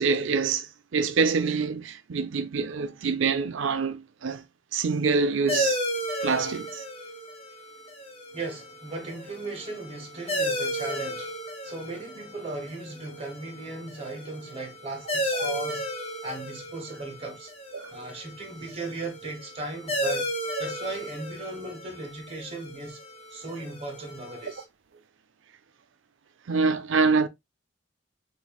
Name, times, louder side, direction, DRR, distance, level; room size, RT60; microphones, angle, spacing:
voice 1, 0.0-4.4 4.7-5.8 6.2-6.8 17.7-17.9 20.6-20.7 26.5-27.3, right 4 dB, 70° right, 0.5 m, -26 dB
sound 1, 5.5-24.6, equal, 30° left, 0.9 m, -34 dB
voice 2, 8.3-11.3 11.6-15.9 16.2-17.5 17.9-20.3 20.6-23.0 23.3-24.6, right 2 dB, 30° right, 1.3 m, -37 dB
3.9 x 3.3 x 2.3 m
head